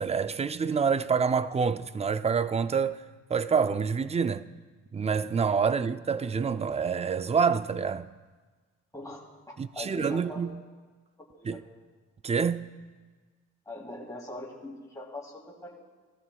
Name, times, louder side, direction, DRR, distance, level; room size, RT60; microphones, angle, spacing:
voice 1, 0.0-3.0 3.3-4.5 4.9-8.1 9.6-10.6 11.4-11.6 12.2-12.7, right 6 dB, 20° right, 0.4 m, -27 dB
voice 2, 9.5-10.4 11.2-11.6 13.7-15.8, left 2 dB, 10° left, 2.8 m, -42 dB
16.5 x 14.0 x 2.3 m
cardioid pair, 90°, 30 cm